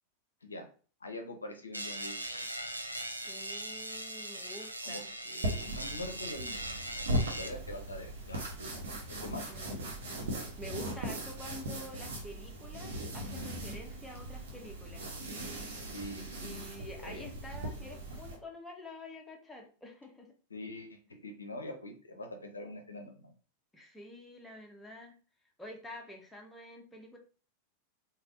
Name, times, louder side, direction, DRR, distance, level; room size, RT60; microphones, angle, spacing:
voice 1, 1.0-2.1 4.8-8.7 9.1-9.4 15.8-17.3 20.5-23.3, left 1 dB, 75° left, 4 dB, 0.5 m, -44 dB
sound 1, 1.7-7.5, right 1 dB, 85° right, 0.3 m, -40 dB
voice 2, 3.2-5.1 9.5-9.8 10.3-15.1 16.4-20.3 23.7-25.1 25.6-27.2, left 1 dB, 5° left, 1 dB, 0.7 m, -48 dB
sound 2, 5.4-18.4, right 1 dB, 60° right, 0.9 m, -39 dB
3.3 x 2.3 x 2.5 m, 0.39 s
figure-of-eight pair, 90°, 0 cm